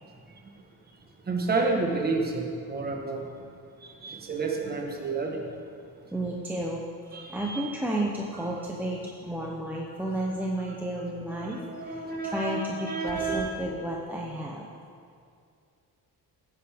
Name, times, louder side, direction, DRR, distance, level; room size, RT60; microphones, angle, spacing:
voice 1, 1.3-3.2 3.8-5.5 7.1-7.6 11.3-13.5, right 3 dB, 25° right, 1 dB, 1.3 m, -30 dB
voice 2, 6.1-6.8 7.1-14.7, right 1 dB, 5° right, -3 dB, 0.7 m, -32 dB
16.5 x 9.7 x 3.5 m, 2.4 s
cardioid pair, 170°, 38 cm